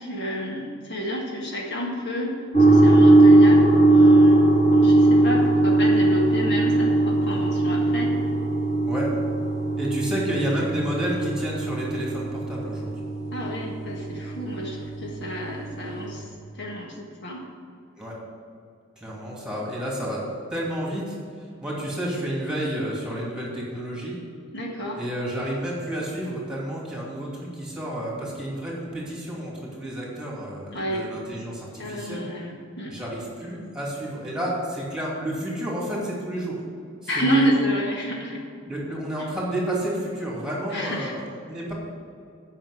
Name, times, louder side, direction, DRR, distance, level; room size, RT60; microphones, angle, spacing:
voice 1, 0.0-8.2 13.3-17.5 24.5-25.0 30.7-31.1 31.7-33.0 37.1-38.4 39.2-39.3 40.7-41.1, equal, 60° left, -2 dB, 1.7 m, -30 dB
sound 1, 2.5-16.2, right 2 dB, 30° left, 2.7 m, -19 dB
voice 2, 9.8-13.0 18.0-18.2 19.0-20.2 20.5-21.2 21.6-24.2 24.9-32.2 32.9-36.6 37.0-37.5 38.7-41.7, right 1 dB, 5° right, -4 dB, 2.7 m, -30 dB
8.9 x 5.9 x 8.2 m, 2.4 s
head